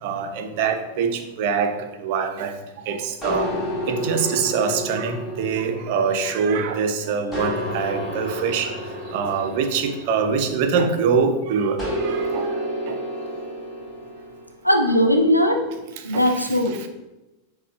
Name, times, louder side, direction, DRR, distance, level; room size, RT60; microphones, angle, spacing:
voice 1, 0.0-2.5 2.9-3.5 3.9-8.8 9.1-13.0 15.7-16.9, right 5 dB, 50° right, 6 dB, 0.4 m, -24 dB
sound 1, 3.2-6.8 7.3-11.0 11.8-14.5, equal, 10° left, 1.2 m, -30 dB
voice 2, 14.6-15.6 16.0-16.9, equal, 90° left, 3 dB, 0.4 m, -19 dB
6.4 x 2.1 x 2.6 m, 0.99 s
figure-of-eight pair, 90°, 0 cm